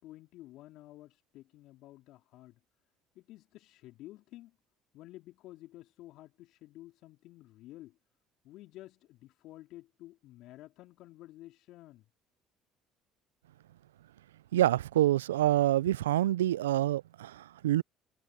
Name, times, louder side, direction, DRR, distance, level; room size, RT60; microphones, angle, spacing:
voice 1, 0.0-2.6 3.2-4.6 4.9-8.0 8.4-12.0, left 16 dB, 65° left, 3.5 m, -51 dB
voice 2, 14.5-17.8, right 13 dB, 85° right, 0.4 m, -27 dB
hypercardioid pair, 60°, 0 cm